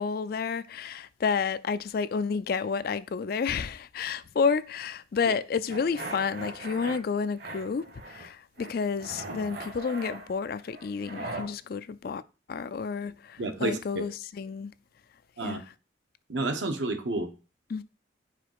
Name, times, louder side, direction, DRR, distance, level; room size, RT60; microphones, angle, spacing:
voice 1, 0.0-12.2 12.5-14.7 15.4-15.7 17.7-17.8, left 5 dB, 50° left, 0.3 m, -30 dB
sound 1, 5.7-7.0 7.4-8.3 8.6-11.5, right 2 dB, 55° right, 1.5 m, -40 dB
voice 2, 13.4-13.8 15.4-15.6 16.3-17.3, right 2 dB, 70° right, 1.0 m, -29 dB
5.0 x 5.0 x 4.7 m
head